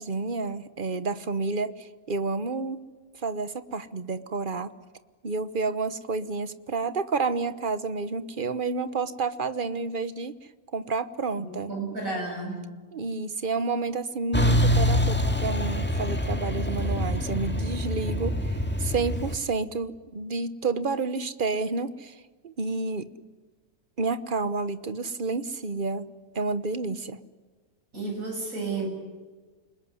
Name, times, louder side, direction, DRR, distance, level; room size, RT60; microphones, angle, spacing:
voice 1, 0.0-2.8 3.2-4.7 5.2-10.3 10.7-11.7 12.9-22.2 22.4-23.1 24.0-27.2, right 4 dB, 40° right, 13 dB, 1.2 m, -30 dB
voice 2, 11.4-12.6 27.9-28.9, right 3 dB, 70° right, 2 dB, 7.6 m, -32 dB
Truck, 14.3-19.4, equal, 5° left, 1.9 m, -25 dB
29.5 x 20.5 x 9.7 m, 1.4 s
omnidirectional pair, 1.5 m